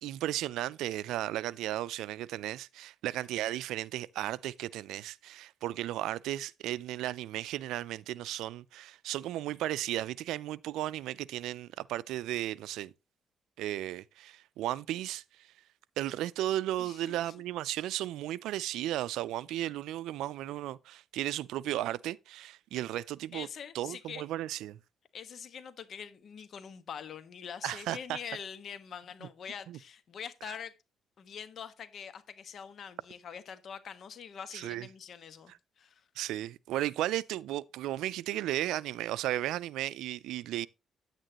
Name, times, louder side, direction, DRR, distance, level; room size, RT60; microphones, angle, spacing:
voice 1, 0.0-12.9 13.6-15.2 16.0-23.5 23.7-24.8 27.6-28.2 29.7-29.8 30.5-30.6 34.5-34.9 36.2-40.7, right 14 dB, 90° right, 0.4 m, -35 dB
voice 2, 16.8-17.3 23.3-24.2 25.1-30.7 31.2-36.0, left 7 dB, 60° left, 1.4 m, -44 dB
9.6 x 9.0 x 2.9 m
cardioid pair, 90°, 0 cm